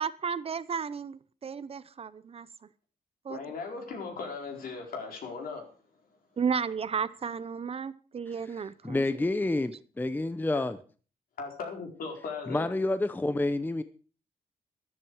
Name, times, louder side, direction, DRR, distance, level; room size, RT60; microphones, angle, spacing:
voice 1, 0.0-2.5 3.2-3.4 6.4-9.0, right 6 dB, 40° right, 0.7 m, -33 dB
voice 2, 3.3-5.6 10.5-10.7 11.4-12.7, left 4 dB, 70° left, 4.4 m, -38 dB
voice 3, 8.8-10.8 12.5-13.8, left 2 dB, 10° left, 0.7 m, -29 dB
13.0 x 12.0 x 4.8 m
cardioid pair, 130°, 16 cm